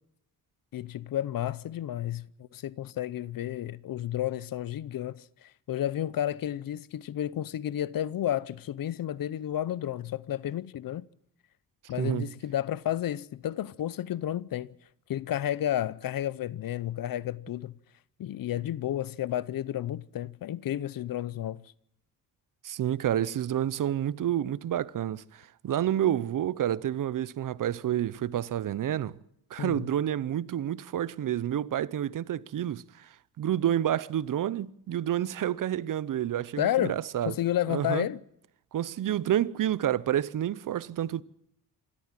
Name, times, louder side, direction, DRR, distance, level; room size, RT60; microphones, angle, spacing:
voice 1, 0.7-11.1 11.9-14.7 15.1-17.7 18.2-21.6 29.6-29.8 36.6-37.0 37.3-38.2, left 12 dB, 70° left, 0.7 m, -31 dB
voice 2, 12.0-12.3 22.6-29.2 29.5-37.4 37.7-38.1 38.7-41.2, right 11 dB, 60° right, 0.7 m, -29 dB
27.0 x 13.0 x 7.4 m
cardioid pair, 120°, 36 cm